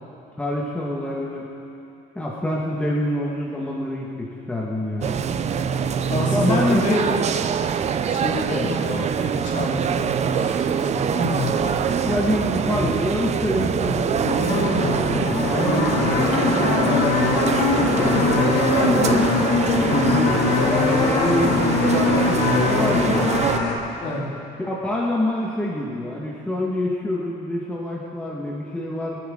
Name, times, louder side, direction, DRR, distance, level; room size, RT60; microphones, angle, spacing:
voice 1, 0.4-1.5 2.2-5.2 5.9-6.0 6.3-7.0 8.5-8.7 12.0-17.6 18.0-19.3 19.9-23.2 24.6-29.2, left 1 dB, 5° left, -4 dB, 1.8 m, -26 dB
sound 1, 5.0-23.6, right 7 dB, 40° right, 0.6 m, -24 dB
voice 2, 6.1-7.0 8.1-11.5 19.8-20.2 24.0-24.3, left 1 dB, 50° left, -5 dB, 4.2 m, -29 dB
sound 2, 11.1-23.8, left 4 dB, 75° left, 2.7 m, -22 dB
24.5 x 10.0 x 3.9 m, 2.8 s
cardioid pair, 110°, 17 cm